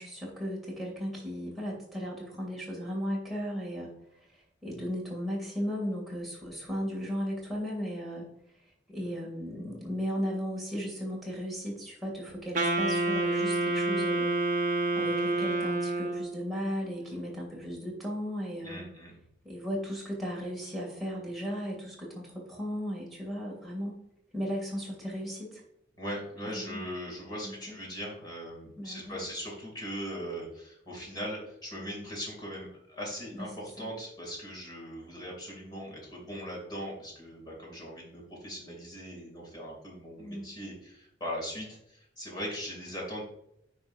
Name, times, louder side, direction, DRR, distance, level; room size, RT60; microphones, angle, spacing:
voice 1, 0.0-3.9 4.3-8.3 8.9-14.3 14.9-18.8 19.4-24.0 24.3-25.6 26.5-26.8 27.4-27.8 28.8-29.2 33.4-33.9 40.2-40.5, equal, ahead, -5 dB, 2.6 m, -36 dB
Wind instrument woodwind instrument, 12.5-16.4, right 2 dB, 45° right, 0.8 m, -28 dB
voice 2, 18.6-19.1 26.0-43.2, equal, 25° left, -2 dB, 2.6 m, -40 dB
9.7 x 4.8 x 2.7 m, 0.77 s
head